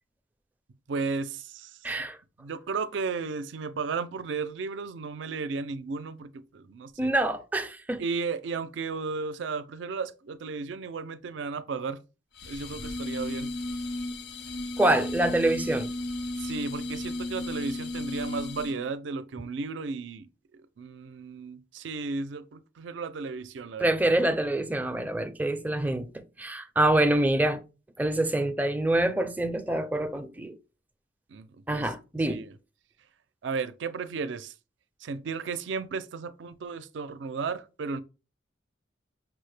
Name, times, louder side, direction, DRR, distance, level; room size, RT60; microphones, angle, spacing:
voice 1, 0.9-2.1 2.4-7.1 8.0-12.0 12.4-13.5 16.4-24.1 31.3-31.9 32.3-32.6 33.4-34.5 35.0-38.0, right 4 dB, 75° right, 0.4 m, -34 dB
voice 2, 1.8-2.2 7.0-8.0 14.8-15.9 23.8-27.6 28.0-30.6 31.7-32.4, right 1 dB, 10° right, 0.4 m, -26 dB
sound 1, 12.4-18.9, left 2 dB, 60° left, 0.5 m, -34 dB
6.0 x 2.1 x 3.2 m
head